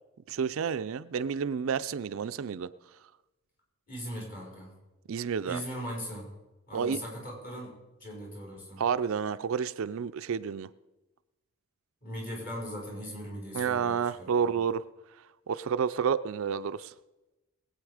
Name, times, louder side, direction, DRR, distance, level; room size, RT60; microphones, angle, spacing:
voice 1, 0.3-2.7 5.1-5.6 6.7-7.0 8.8-10.7 13.5-14.8 15.5-16.9, right 7 dB, 65° right, 13 dB, 0.4 m, -30 dB
voice 2, 3.9-4.7 5.5-6.3 6.7-8.8 12.0-14.5, equal, 40° left, -3 dB, 5.2 m, -39 dB
20.5 x 8.6 x 4.9 m, 1.1 s
head